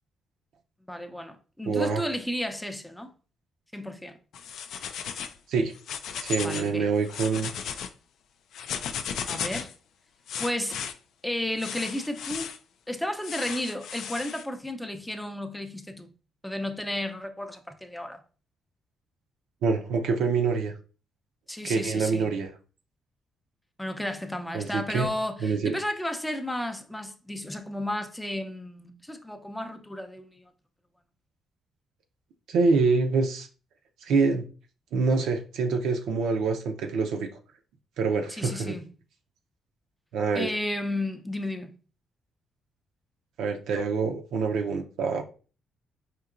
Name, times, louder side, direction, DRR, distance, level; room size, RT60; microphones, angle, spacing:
voice 1, 0.9-3.1 3.7-4.2 6.4-6.9 9.3-9.7 10.4-10.8 11.2-12.5 12.9-16.1 16.4-18.2 21.5-22.3 23.8-30.5 38.3-38.8 40.3-41.7, left 1 dB, 5° left, 0.5 m, -33 dB
voice 2, 1.7-2.0 5.5-5.7 6.2-7.5 19.6-20.7 21.6-22.5 24.5-25.1 25.4-25.8 32.5-33.5 34.0-34.4 34.9-37.3 38.0-38.8 40.1-40.5 43.4-45.2, right 4 dB, 85° right, 0.6 m, -26 dB
sound 1, 4.3-5.4 5.7-6.7 7.0-7.9 8.5-9.7 10.3-10.9 11.6-12.6 13.2-14.4, left 7 dB, 75° left, 0.3 m, -35 dB
4.5 x 2.8 x 2.5 m
cardioid pair, 90°, 0 cm